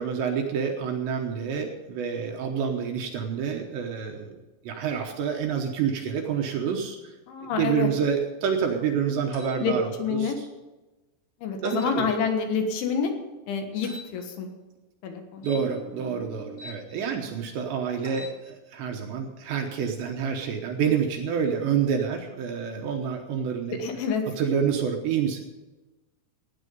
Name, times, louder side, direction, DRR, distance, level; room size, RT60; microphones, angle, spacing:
voice 1, 0.0-4.4 4.6-7.2 7.4-10.5 11.6-12.1 15.4-23.8 24.3-25.4, right 7 dB, 70° right, 3 dB, 2.9 m, -28 dB
voice 2, 7.3-7.9 9.6-9.7 10.0-10.4 11.4-13.1 13.5-14.5 15.0-15.5 23.8-24.2, left 6 dB, 70° left, 4 dB, 3.6 m, -27 dB
sound 1, 9.3-9.6 11.6-11.9 13.8-14.1 15.4-16.8 18.0-18.4, equal, 40° left, 4.9 m, -42 dB
16.0 x 9.7 x 5.4 m, 1.1 s
omnidirectional pair, 5.9 m